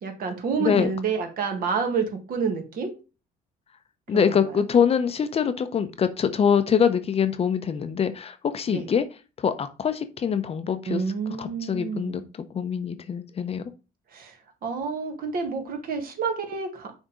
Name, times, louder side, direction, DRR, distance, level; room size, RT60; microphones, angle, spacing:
voice 1, 0.0-2.9 4.1-4.4 8.7-8.9 10.9-12.3 14.1-14.4 14.6-16.9, right 5 dB, 60° right, 4 dB, 1.9 m, -29 dB
voice 2, 0.6-0.9 4.1-9.1 9.4-11.0 11.4-13.6, left 7 dB, 35° left, 10 dB, 0.7 m, -24 dB
6.4 x 3.6 x 5.0 m, 0.32 s
cardioid pair, 110°, 17 cm